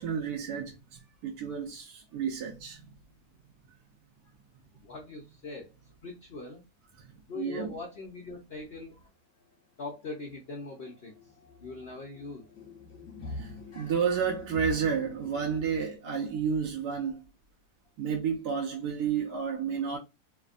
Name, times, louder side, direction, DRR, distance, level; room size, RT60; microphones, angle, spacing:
voice 1, 0.0-2.9 7.3-7.8 13.4-17.2 18.0-20.0, right 6 dB, 70° right, 1.1 m, -31 dB
voice 2, 4.7-5.7 6.0-6.6 7.3-9.0 9.8-11.3 11.6-12.4, left 3 dB, 85° left, 0.5 m, -41 dB
sound 1, 9.0-9.1 9.4-9.5 9.8-15.8, left 2 dB, 50° left, 1.2 m, -45 dB
3.3 x 2.1 x 2.4 m
omnidirectional pair, 2.0 m